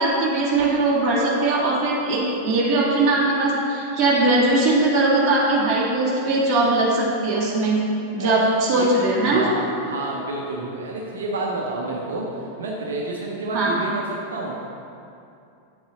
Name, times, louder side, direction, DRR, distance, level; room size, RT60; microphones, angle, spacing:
voice 1, 0.0-7.8 8.1-9.5 13.5-13.7, right 2 dB, 30° right, -6 dB, 2.1 m, -20 dB
voice 2, 8.2-8.9 9.2-14.5, right 2 dB, 65° right, -1 dB, 1.0 m, -29 dB
9.1 x 7.1 x 3.9 m, 2.6 s
figure-of-eight pair, 90°, 0 cm